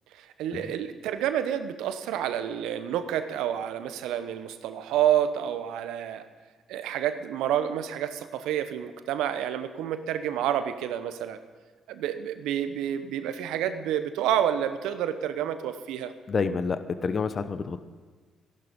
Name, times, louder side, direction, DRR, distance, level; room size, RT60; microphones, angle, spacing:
voice 1, 0.2-6.3 6.7-11.4 11.9-16.1, right 10 dB, 75° right, 10 dB, 0.9 m, -29 dB
voice 2, 16.3-17.8, left 5 dB, 45° left, 12 dB, 0.9 m, -28 dB
14.5 x 11.5 x 5.3 m, 1.5 s
hypercardioid pair, 50°, 0 cm